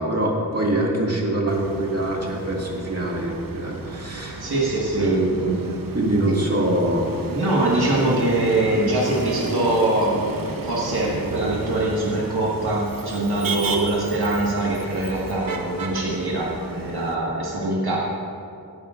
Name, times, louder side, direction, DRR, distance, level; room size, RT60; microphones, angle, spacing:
voice 1, 0.0-4.5 5.0-5.6 5.9-7.1, right 1 dB, 40° right, -2 dB, 2.1 m, -24 dB
Motor vehicle (road), 1.5-17.2, right 3 dB, 65° right, 0.9 m, -33 dB
voice 2, 4.4-5.3 7.3-18.0, right 2 dB, 85° right, -6 dB, 1.7 m, -23 dB
16.5 x 10.5 x 2.5 m, 2.5 s
wide cardioid pair, 60°, 37 cm